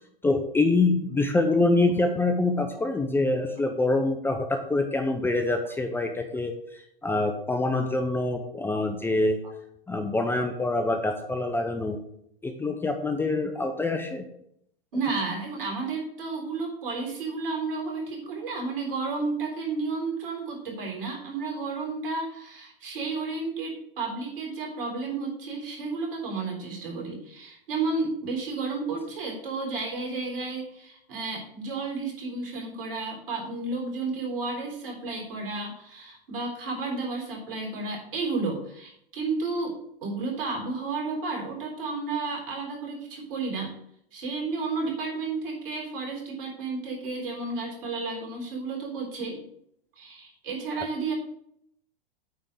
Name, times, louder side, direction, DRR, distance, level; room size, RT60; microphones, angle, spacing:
voice 1, 0.2-6.5 7.0-9.4 9.9-12.0 12.4-14.2, left 2 dB, 10° left, 5 dB, 0.6 m, -25 dB
voice 2, 14.9-43.7 44.1-49.4 50.0-51.1, right 3 dB, 70° right, 0 dB, 4.0 m, -32 dB
9.2 x 3.7 x 6.7 m, 0.71 s
hypercardioid pair, 120°, 29 cm